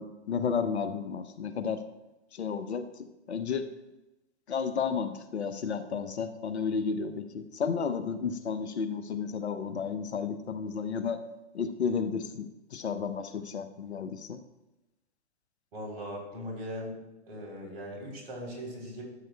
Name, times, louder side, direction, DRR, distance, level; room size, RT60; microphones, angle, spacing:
voice 1, 0.0-1.8 2.3-2.8 3.3-3.6 4.5-11.2 11.5-14.4, left 6 dB, 70° left, 10 dB, 0.8 m, -32 dB
voice 2, 15.7-17.0 17.3-19.0, equal, 60° right, -1 dB, 3.5 m, -39 dB
13.5 x 7.9 x 2.2 m, 1.0 s
figure-of-eight pair, 110°, 34 cm